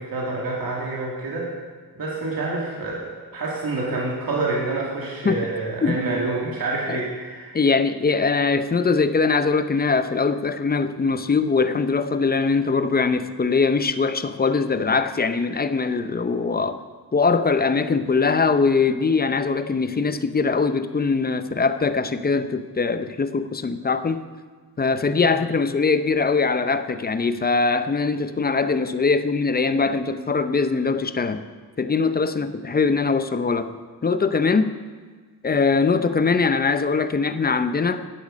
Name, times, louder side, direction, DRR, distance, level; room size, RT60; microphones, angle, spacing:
voice 1, 0.0-1.5 2.0-7.6 25.3-25.5, right 2 dB, 60° right, -4 dB, 2.1 m, -27 dB
voice 2, 7.5-16.8 17.1-24.2 24.8-31.4 31.8-33.7 34.0-34.7 35.4-38.1, left 4 dB, 25° left, 11 dB, 0.5 m, -22 dB
10.5 x 8.0 x 5.1 m, 1.5 s
cardioid pair, 85°, 39 cm